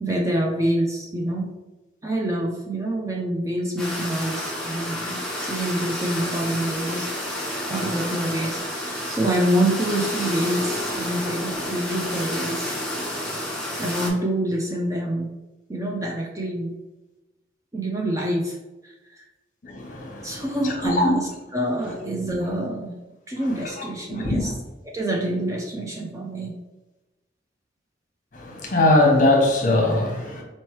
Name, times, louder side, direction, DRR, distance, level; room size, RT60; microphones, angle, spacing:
voice 1, 0.0-1.5 2.0-12.7 13.8-15.3 15.7-16.7 17.7-18.6 18.8-19.2 20.2-23.0 23.3-24.5 24.8-26.6, right 1 dB, 15° right, 0 dB, 0.4 m, -26 dB
sound 1, 3.8-14.1, equal, ahead, 0.8 m, -30 dB
voice 2, 19.6-21.2 23.6-24.5 28.3-30.4, left 2 dB, 45° left, 0 dB, 0.9 m, -21 dB
4.3 x 3.0 x 3.0 m, 1.1 s
head